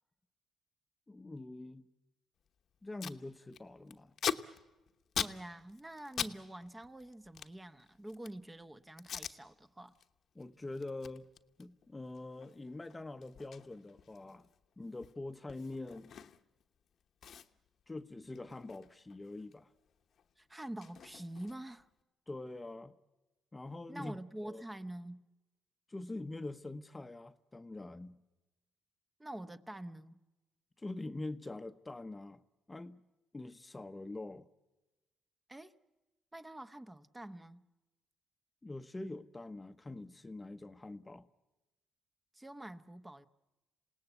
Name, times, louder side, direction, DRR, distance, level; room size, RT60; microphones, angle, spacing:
voice 1, 1.1-1.8 2.8-4.2 10.3-11.3 11.6-14.5 14.8-16.1 17.9-19.7 22.3-22.9 23.5-24.2 24.4-24.6 25.9-28.2 30.8-32.4 32.7-33.0 33.3-34.5 38.6-41.3, left 2 dB, 20° left, 0.9 m, -44 dB
Packing tape duct tape, 2.5-2.6 2.7-3.2 3.5-6.4 6.6-8.5 9.0-9.4 9.8-10.1 10.4-16.6 16.9-17.0 17.2-19.6 19.9-21.8, left 8 dB, 60° left, 1.1 m, -43 dB
voice 2, 5.2-10.0 20.4-21.9 23.9-25.3 29.2-30.2 35.5-35.7 36.3-37.6 42.3-43.3, right 1 dB, 15° right, 0.9 m, -46 dB
27.5 x 18.5 x 8.1 m
cardioid pair, 90°, 0 cm